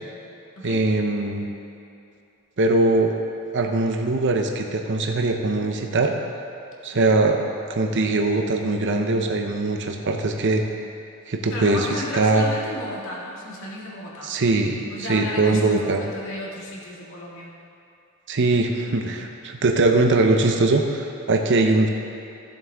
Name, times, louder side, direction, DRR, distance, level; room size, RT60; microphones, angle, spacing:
voice 1, 0.6-1.5 2.6-3.2 3.5-6.1 6.8-10.6 11.3-12.4 14.2-16.0 18.3-21.9, right 2 dB, 55° right, 3 dB, 0.7 m, -21 dB
voice 2, 11.5-14.3 14.9-17.5, left 1 dB, 65° left, -4 dB, 2.0 m, -33 dB
15.0 x 7.3 x 3.5 m, 2.6 s
head